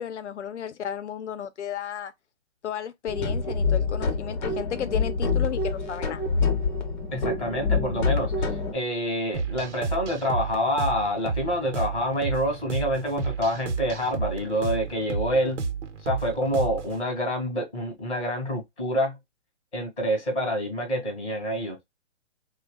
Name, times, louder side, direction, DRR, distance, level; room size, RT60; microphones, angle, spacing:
voice 1, 0.0-2.1 2.6-6.2, left 9 dB, 70° left, 0.7 m, -33 dB
sound 1, 3.1-8.7, left 4 dB, 40° left, 0.8 m, -26 dB
voice 2, 7.1-15.6 16.0-19.2 19.7-21.8, equal, 5° left, 0.4 m, -27 dB
sound 2, 9.3-17.0, right 5 dB, 80° right, 0.9 m, -32 dB
3.0 x 2.3 x 3.6 m
hypercardioid pair, 165°, 36 cm